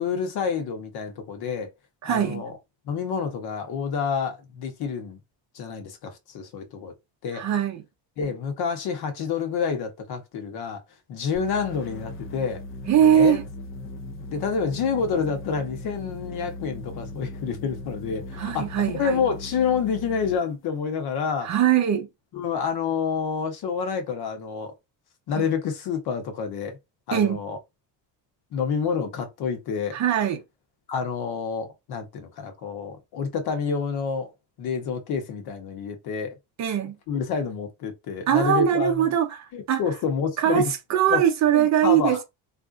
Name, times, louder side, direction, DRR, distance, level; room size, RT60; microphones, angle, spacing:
voice 1, 0.0-1.7 2.0-2.5 2.8-5.2 5.5-6.9 7.2-7.4 8.2-10.8 11.1-12.6 13.1-13.4 14.3-18.7 18.9-21.5 22.3-24.7 25.3-26.8 27.1-27.6 28.5-30.0 30.9-34.3 34.6-36.4 37.1-39.0 39.5-40.7 41.1-41.2 41.5-42.2, left 6 dB, 55° left, 1.0 m, -28 dB
voice 2, 2.0-2.4 7.3-7.8 12.9-13.4 18.4-19.2 21.4-22.1 25.3-25.4 27.1-27.4 29.9-30.4 36.6-36.9 38.3-39.8 40.4-42.2, right 9 dB, 40° right, 0.6 m, -21 dB
sound 1, 11.3-20.5, left 2 dB, 30° left, 0.4 m, -38 dB
3.6 x 2.5 x 2.5 m
cardioid pair, 145°, 45 cm